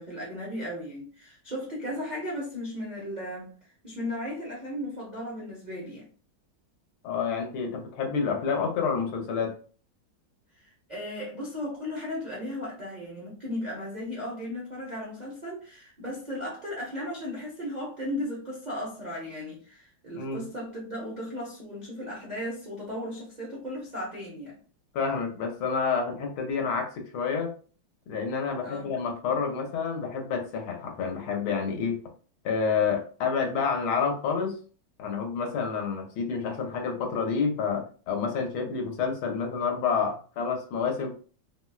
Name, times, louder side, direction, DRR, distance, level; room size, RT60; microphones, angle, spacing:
voice 1, 0.0-6.1 10.5-24.6 28.6-28.8 38.6-38.7, left 1 dB, 70° right, 0.4 m, -36 dB
voice 2, 7.0-9.5 20.1-20.5 24.9-27.5 28.1-32.0 32.4-34.6 35.0-41.1, left 5 dB, 85° left, 1.6 m, -29 dB
4.2 x 2.1 x 2.3 m
omnidirectional pair, 2.3 m